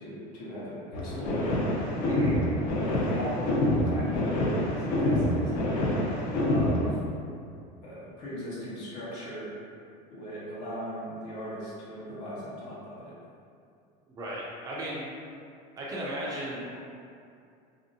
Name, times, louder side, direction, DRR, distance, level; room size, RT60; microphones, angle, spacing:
voice 1, 0.0-1.5 2.8-5.9 6.5-7.0 7.8-9.5 10.1-13.1, equal, 90° left, -8 dB, 1.1 m, -38 dB
sound 1, 0.9-6.9, left 1 dB, 55° left, 0.5 m, -27 dB
voice 2, 2.1-2.4 14.1-15.1 15.8-16.8, right 1 dB, 20° right, -5 dB, 0.3 m, -36 dB
2.7 x 2.6 x 2.6 m, 2.4 s
cardioid pair, 175°, 20 cm